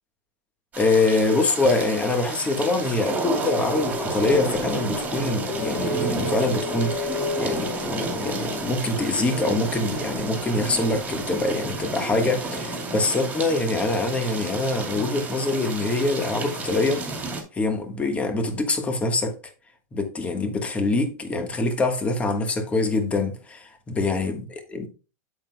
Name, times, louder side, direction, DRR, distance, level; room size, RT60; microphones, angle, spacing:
sound 1, 0.7-17.4, right 3 dB, 15° right, 2.5 m, -32 dB
voice 1, 0.8-17.1 17.5-19.4 19.9-24.9, left 2 dB, 15° left, 1.4 m, -24 dB
sound 2, 3.4-11.4, left 2 dB, 75° left, 2.7 m, -34 dB
8.7 x 7.8 x 2.3 m
supercardioid pair, 150°, 9 cm